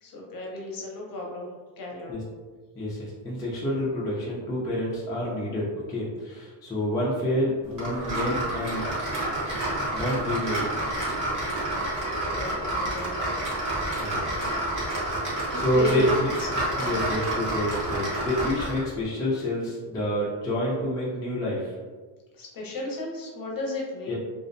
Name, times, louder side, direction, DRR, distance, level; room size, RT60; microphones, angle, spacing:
voice 1, 0.0-1.5 1.8-2.1 12.3-13.2 15.5-16.1 16.4-17.0 22.3-24.1, left 2 dB, 45° left, -2 dB, 0.7 m, -34 dB
voice 2, 3.2-8.8 9.9-10.7 14.0-14.2 15.5-16.4 16.8-21.6 24.1-24.2, left 1 dB, 10° left, -7 dB, 0.3 m, -28 dB
sound 1, 7.8-18.9, right 1 dB, 40° right, 1.0 m, -29 dB
2.5 x 2.0 x 2.5 m, 1.4 s
cardioid pair, 125°, 49 cm